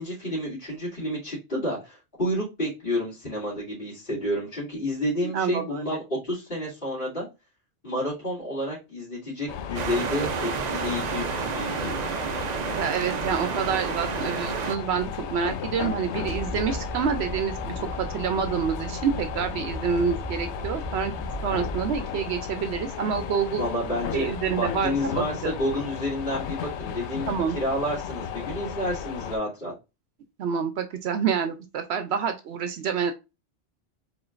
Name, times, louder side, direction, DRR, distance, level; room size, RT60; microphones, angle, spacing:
voice 1, 0.0-7.3 7.8-12.0 23.6-29.7, left 1 dB, 50° left, -12 dB, 2.9 m, -30 dB
voice 2, 5.2-6.0 12.8-21.1 21.4-23.6 24.1-25.5 27.3-27.6 30.4-33.1, right 7 dB, 75° right, 8 dB, 0.8 m, -27 dB
sound 1, 9.5-29.4, left 7 dB, 85° left, 0.9 m, -34 dB
sound 2, 9.7-14.8, right 7 dB, 55° right, 0.5 m, -30 dB
sound 3, 16.2-22.0, right 1 dB, 35° right, 0.8 m, -37 dB
4.9 x 3.9 x 2.5 m, 0.26 s
omnidirectional pair, 1.1 m